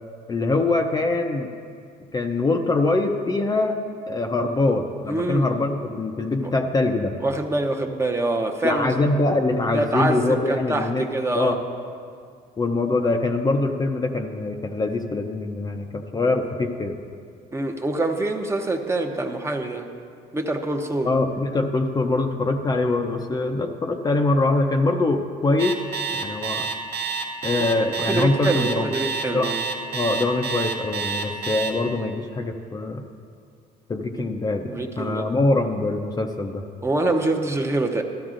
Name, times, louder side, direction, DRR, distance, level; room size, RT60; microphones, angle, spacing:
voice 1, 0.3-1.5 2.1-3.8 4.1-7.2 8.6-11.1 11.3-11.6 12.6-17.0 21.0-25.8 26.1-26.7 27.4-28.9 29.3-29.5 29.9-33.0 33.9-36.6, left 2 dB, 25° left, 3 dB, 0.5 m, -23 dB
voice 2, 5.1-5.5 6.4-6.5 7.2-8.9 9.7-11.6 17.5-19.9 20.3-21.1 27.8-29.6 34.2-34.3 34.7-35.4 36.8-38.0, right 2 dB, 15° right, 3 dB, 0.7 m, -25 dB
Alarm, 25.6-31.7, right 6 dB, 75° right, 1.2 m, -28 dB
13.5 x 13.0 x 2.5 m, 2.2 s
cardioid pair, 110°, 17 cm